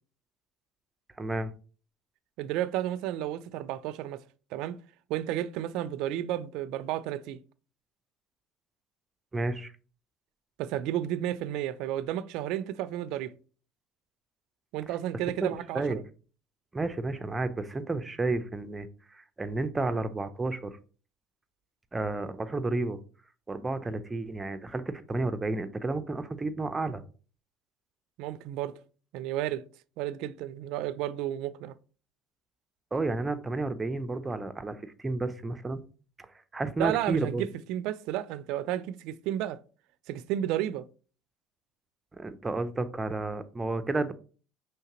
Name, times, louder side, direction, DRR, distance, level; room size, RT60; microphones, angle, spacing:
voice 1, 1.2-1.5 9.3-9.7 15.4-16.0 16.7-18.9 19.1-20.8 21.9-23.0 23.5-27.0 32.9-35.8 36.5-37.5 42.1-44.1, right 2 dB, 15° right, 0.5 m, -31 dB
voice 2, 2.4-4.2 4.5-4.8 5.1-7.4 10.6-13.3 14.7-16.0 28.2-28.7 29.1-29.6 30.0-31.7 36.8-39.6 40.1-40.9, right 12 dB, 80° right, 0.3 m, -32 dB
5.6 x 3.2 x 2.9 m
cardioid pair, 115°, 0 cm